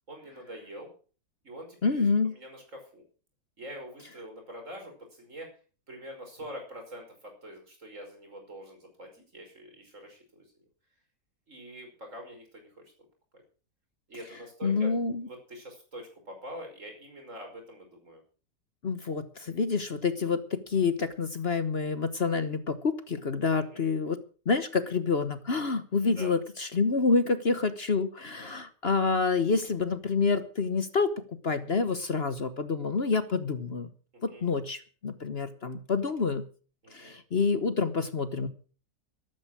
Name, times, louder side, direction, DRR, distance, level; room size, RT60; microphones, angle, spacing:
voice 1, 0.1-0.9 1.4-2.6 2.9-3.0 3.6-5.5 5.9-10.5 11.5-12.8 13.3-13.4 14.1-14.9 15.3-18.2 23.5-23.9 26.1-26.3 28.4-28.6 34.3-34.4 36.8-37.2, equal, 55° right, 3 dB, 5.6 m, -45 dB
voice 2, 1.8-2.3 14.6-15.3 18.8-33.9 34.2-36.4 36.9-38.5, left 4 dB, 45° left, 11 dB, 1.3 m, -28 dB
13.0 x 13.0 x 6.1 m, 0.39 s
omnidirectional pair, 1.5 m